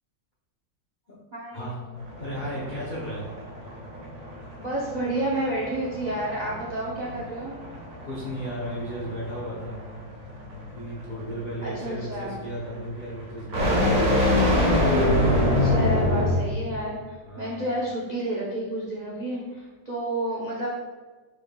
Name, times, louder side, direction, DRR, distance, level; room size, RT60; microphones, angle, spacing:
voice 1, 1.3-1.8 4.6-7.5 11.6-12.3 15.5-20.7, right 1 dB, 75° right, -6 dB, 0.4 m, -30 dB
sound 1, 2.0-16.5, left 1 dB, 50° right, 1.4 m, -26 dB
voice 2, 2.2-3.2 8.0-9.7 10.5-13.9 17.2-17.7, right 1 dB, 70° left, -6 dB, 0.4 m, -35 dB
4.8 x 4.6 x 2.2 m, 1.3 s
omnidirectional pair, 2.0 m